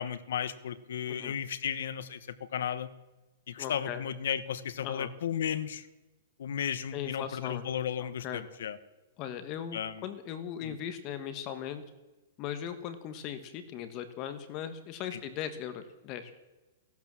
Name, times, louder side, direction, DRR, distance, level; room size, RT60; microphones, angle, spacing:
voice 1, 0.0-2.2 2.5-2.9 3.5-5.9 6.4-8.8 9.7-10.0 10.6-10.7 15.1-15.2, left 9 dB, 70° left, 13 dB, 1.1 m, -34 dB
voice 2, 3.6-4.0 4.8-5.1 6.9-7.6 8.0-8.4 9.2-11.8 12.4-16.3, left 9 dB, 30° left, 10 dB, 1.3 m, -38 dB
16.5 x 12.0 x 7.5 m, 1.1 s
hypercardioid pair, 165°, 0 cm